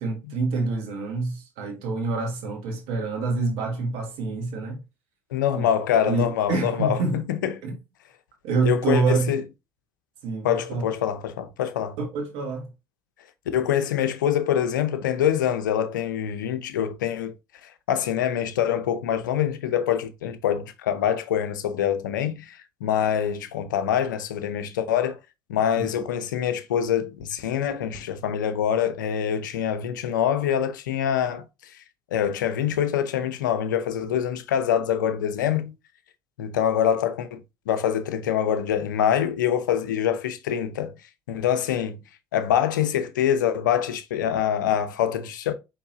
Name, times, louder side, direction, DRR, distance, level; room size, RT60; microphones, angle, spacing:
voice 1, 0.0-4.8 5.5-5.7 6.1-7.2 7.6-7.8 8.4-9.3 10.2-10.8 12.0-12.7 25.8-25.9, right 3 dB, 70° right, 1.5 m, -26 dB
voice 2, 5.3-7.6 8.6-9.4 10.4-12.0 13.5-17.3 17.6-25.2 25.5-31.8 32.1-35.7 36.4-37.4 37.7-41.0 41.3-42.0 42.3-45.5, left 9 dB, 90° left, 0.5 m, -25 dB
4.5 x 3.7 x 2.8 m
hypercardioid pair, 60°, 10 cm